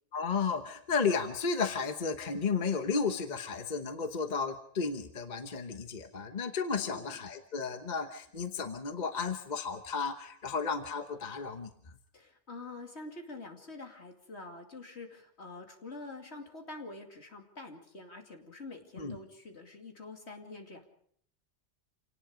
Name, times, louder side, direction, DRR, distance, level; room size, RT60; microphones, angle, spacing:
voice 1, 0.1-11.7 19.0-19.2, left 5 dB, 40° left, 7 dB, 1.3 m, -33 dB
voice 2, 6.7-7.2 12.1-20.9, left 2 dB, 70° left, 3 dB, 2.8 m, -46 dB
27.5 x 18.5 x 5.1 m, 0.64 s
omnidirectional pair, 1.2 m